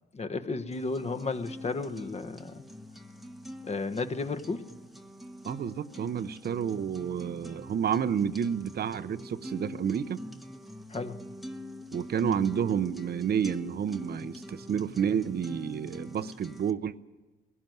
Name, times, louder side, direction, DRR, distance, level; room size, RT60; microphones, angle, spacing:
voice 1, 0.1-2.6 3.6-4.7 10.9-11.2, left 3 dB, 35° left, 1.2 m, -33 dB
sound 1, 0.7-16.7, equal, ahead, 1.0 m, -43 dB
voice 2, 5.4-10.2 11.9-16.9, right 8 dB, 50° right, 0.8 m, -30 dB
20.5 x 17.0 x 9.3 m
cardioid pair, 90°, 20 cm